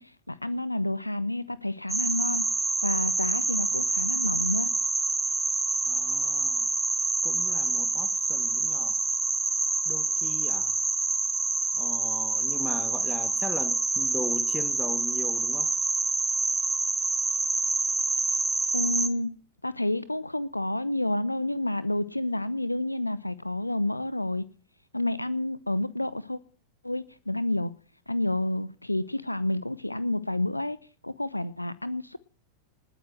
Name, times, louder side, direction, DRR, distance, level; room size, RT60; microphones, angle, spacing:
voice 1, 0.0-2.5 2.8-4.7 18.7-19.4 19.6-24.5 24.9-26.4 26.8-27.7 28.1-30.8 31.0-32.2, left 1 dB, 85° left, 18 dB, 0.7 m, -29 dB
sound 1, 1.9-19.1, right 3 dB, 10° right, 1.3 m, -27 dB
voice 2, 5.9-6.7 7.2-9.0 9.9-10.7 11.7-15.7, left 2 dB, 5° left, 9 dB, 2.0 m, -38 dB
19.5 x 9.1 x 7.8 m, 0.40 s
figure-of-eight pair, 90°, 0 cm